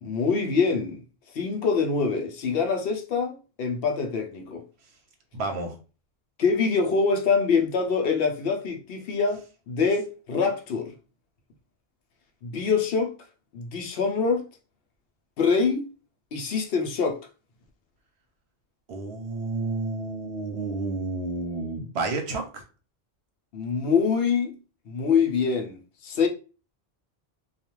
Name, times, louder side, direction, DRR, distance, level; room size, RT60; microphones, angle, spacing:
voice 1, 0.0-1.0 1.3-4.6 6.4-10.9 12.4-13.1 13.5-14.4 15.4-15.9 16.3-17.2 23.5-24.5 24.9-26.3, left 5 dB, 70° left, 0.8 m, -25 dB
voice 2, 5.3-5.8 18.9-22.6, right 3 dB, 85° right, 0.9 m, -30 dB
2.3 x 2.2 x 3.0 m
omnidirectional pair, 1.1 m